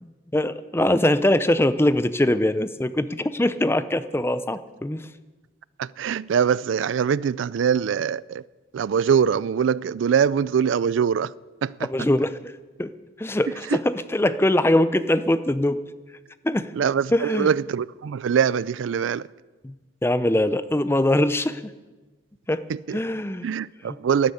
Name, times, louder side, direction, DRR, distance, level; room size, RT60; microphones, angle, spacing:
voice 1, 0.0-5.1 11.9-12.5 12.8-12.9 13.2-15.8 16.4-16.7 17.1-17.5 19.6-19.7 20.0-21.6 22.5-22.6 22.9-23.5, left 1 dB, 15° left, 0.5 m, -22 dB
voice 2, 5.8-8.4 8.7-11.3 11.6-11.7 13.7-13.8 16.7-19.2 22.9-23.0 23.4-24.3, right 7 dB, 85° right, 0.4 m, -23 dB
12.0 x 11.5 x 8.6 m
head